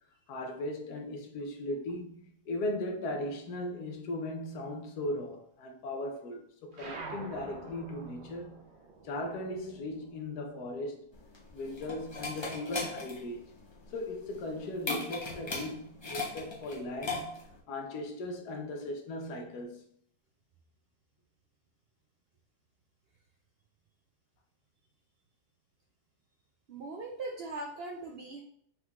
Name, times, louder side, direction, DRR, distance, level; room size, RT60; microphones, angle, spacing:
voice 1, 0.3-8.6 9.0-11.1 11.5-13.4 13.9-19.8, left 1 dB, 80° left, 1.3 m, -38 dB
sound 1, 6.7-11.6 11.9-13.4, right 3 dB, 55° right, 0.9 m, -48 dB
sound 2, 11.1-17.6, left 3 dB, 25° left, 0.5 m, -38 dB
voice 2, 26.7-28.4, right 2 dB, 85° right, 0.5 m, -40 dB
5.4 x 3.6 x 2.3 m
omnidirectional pair, 1.7 m